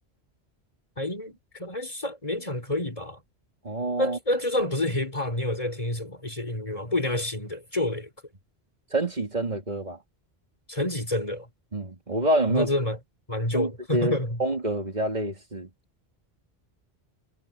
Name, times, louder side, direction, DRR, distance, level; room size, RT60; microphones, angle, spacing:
voice 1, 1.0-3.2 4.0-8.1 10.7-11.5 12.5-13.0 13.3-14.4, left 1 dB, 35° left, 4.4 m, -28 dB
voice 2, 3.6-4.2 8.9-10.0 11.7-12.7 13.5-15.7, right 1 dB, 40° right, 2.8 m, -27 dB
omnidirectional pair, 1.1 m